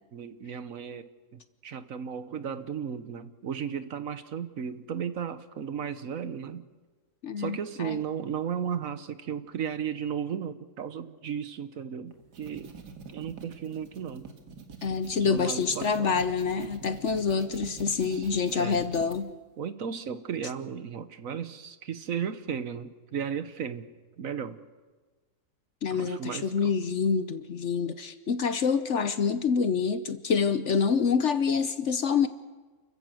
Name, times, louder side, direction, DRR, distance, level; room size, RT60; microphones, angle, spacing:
voice 1, 0.1-6.6 7.4-12.7 13.1-14.3 15.3-16.1 18.0-18.3 18.5-18.8 19.6-23.9 24.2-24.6 25.9-26.7, right 7 dB, 60° right, 12 dB, 1.3 m, -35 dB
voice 2, 7.2-8.0 14.8-19.3 25.8-32.3, left 5 dB, 55° left, 12 dB, 1.0 m, -27 dB
sound 1, 12.1-19.2, right 5 dB, 90° right, 2.4 m, -45 dB
29.0 x 14.5 x 7.7 m, 1.3 s
omnidirectional pair, 1.7 m